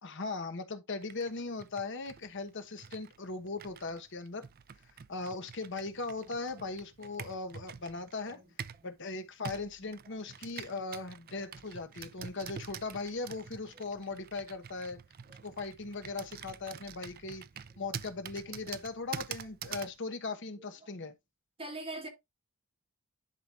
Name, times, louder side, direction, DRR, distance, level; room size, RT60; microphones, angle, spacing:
voice 1, 0.0-4.4 5.1-8.4 8.8-15.0 15.3-17.4 17.8-21.1, left 3 dB, 55° left, 1.1 m, -39 dB
Computer keyboard, 1.0-8.9 9.4-20.0, right 7 dB, 45° right, 0.4 m, -47 dB
voice 2, 6.2-6.7 7.2-7.3 8.3-8.4 9.8-10.2 11.3-11.6 13.9-14.0 15.3-15.5 17.7-17.8 18.4-18.5 19.7-19.8 20.8-20.9 21.6-22.1, right 2 dB, 25° right, 2.3 m, -46 dB
11.0 x 5.0 x 2.5 m
head